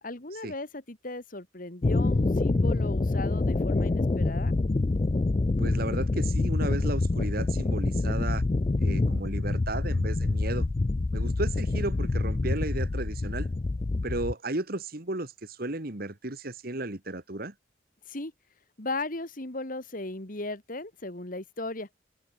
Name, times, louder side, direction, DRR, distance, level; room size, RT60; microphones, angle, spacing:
voice 1, 0.0-4.5 18.1-18.3 18.8-21.9, left 2 dB, 45° left, 2.4 m, -36 dB
sound 1, 1.8-14.3, left 2 dB, 30° left, 0.4 m, -26 dB
voice 2, 5.6-8.4 8.8-10.7 11.1-13.5 14.0-17.5, right 2 dB, 50° right, 2.0 m, -34 dB
open air
head